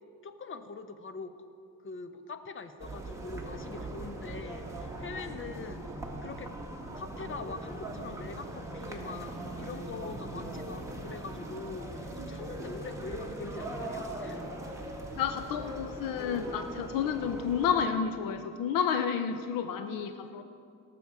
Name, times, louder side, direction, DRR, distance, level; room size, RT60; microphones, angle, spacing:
voice 1, 0.2-1.3 1.8-5.9 6.2-6.5 6.9-14.5 19.9-20.4, left 4 dB, 35° left, 9 dB, 0.9 m, -43 dB
sound 1, 2.8-17.9, right 1 dB, 10° right, 1.7 m, -40 dB
voice 2, 15.1-20.4, left 7 dB, 85° left, 8 dB, 0.6 m, -30 dB
18.0 x 6.9 x 4.8 m, 2.5 s
cardioid pair, 95°, 33 cm